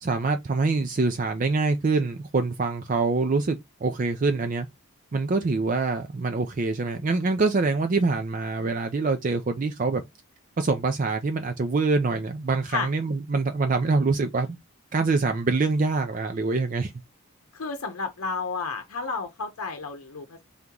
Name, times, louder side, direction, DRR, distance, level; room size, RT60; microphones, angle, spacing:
voice 1, 0.0-4.7 5.1-10.0 10.6-14.6 14.9-16.9, right 3 dB, 35° right, 0.4 m, -25 dB
voice 2, 17.5-20.4, left 4 dB, 90° left, 0.7 m, -31 dB
3.6 x 2.9 x 3.6 m
head